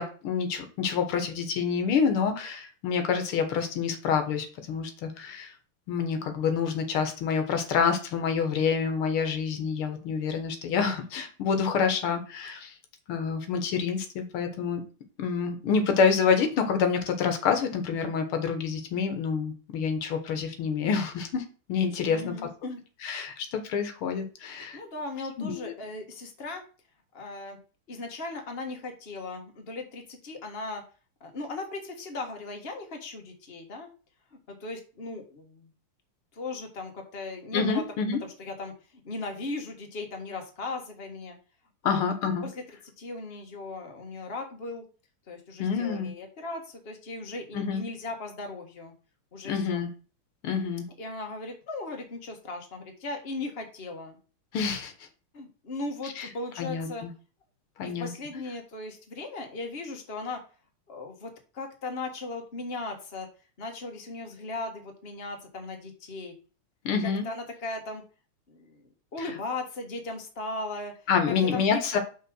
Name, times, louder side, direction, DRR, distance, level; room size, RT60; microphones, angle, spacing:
voice 1, 0.0-5.5 5.9-12.7 13.1-14.8 15.2-21.4 21.7-22.3 23.0-24.8 25.4-25.7 37.5-38.2 41.8-42.5 45.6-46.1 47.5-47.9 49.5-49.9 50.4-50.9 54.5-54.9 56.2-56.3 56.6-57.1 57.8-58.1 66.9-67.3 71.1-72.0, left 6 dB, 90° left, 7 dB, 2.1 m, -27 dB
voice 2, 22.0-22.8 24.7-26.6 27.1-27.6 27.9-30.8 31.2-33.9 34.3-35.7 36.3-37.8 38.2-41.4 41.8-42.0 42.4-42.5 43.0-44.8 45.3-48.9 49.3-49.8 51.0-54.2 55.3-57.0 57.8-60.4 60.9-63.3 63.6-66.3 67.2-68.0 68.5-68.8 69.1-70.9 71.3-72.0, left 3 dB, 30° left, 3 dB, 1.6 m, -37 dB
5.7 x 4.8 x 6.2 m, 0.36 s
omnidirectional pair, 2.3 m